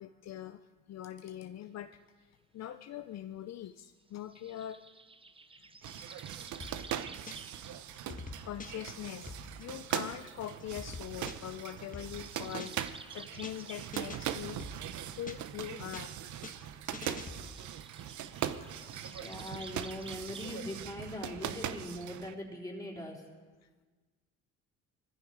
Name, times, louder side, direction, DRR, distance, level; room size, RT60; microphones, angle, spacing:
voice 1, 0.0-1.9 2.2-2.3 2.5-4.8 5.5-5.7 7.6-7.7 8.4-14.7 15.1-16.1, left 11 dB, 60° left, 9 dB, 0.6 m, -43 dB
sound 1, 4.3-7.8 8.3-9.4 10.4-10.5 11.9-14.2 17.3-20.5, right 3 dB, 20° right, 0.7 m, -52 dB
sound 2, 5.8-22.3, right 10 dB, 75° right, 0.8 m, -40 dB
sound 3, 6.6-7.6 7.9-10.3 10.6-13.0 13.3-13.6 13.9-15.6 15.9-17.7, left 3 dB, 25° left, 1.3 m, -47 dB
voice 2, 19.2-23.2, left 1 dB, 10° left, -2 dB, 3.9 m, -41 dB
20.5 x 14.5 x 4.7 m, 1.4 s
cardioid pair, 90°, 30 cm